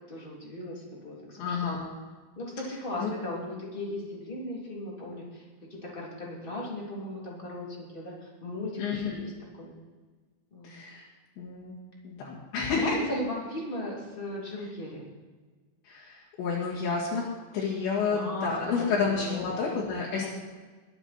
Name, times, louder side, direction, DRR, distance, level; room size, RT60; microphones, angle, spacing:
voice 1, 0.0-1.7 2.4-5.4 5.7-8.1 8.4-9.3 9.6-9.7 10.5-10.8 12.7-15.0 18.1-18.5 18.7-19.4 20.1-20.3, left 1 dB, 15° left, -4 dB, 2.7 m, -37 dB
voice 2, 1.4-1.9 3.0-3.1 8.8-9.2 10.6-11.1 11.4-11.7 12.0-13.1 15.8-20.3, left 5 dB, 75° left, -6 dB, 4.4 m, -30 dB
22.0 x 9.8 x 4.4 m, 1.4 s
omnidirectional pair, 5.3 m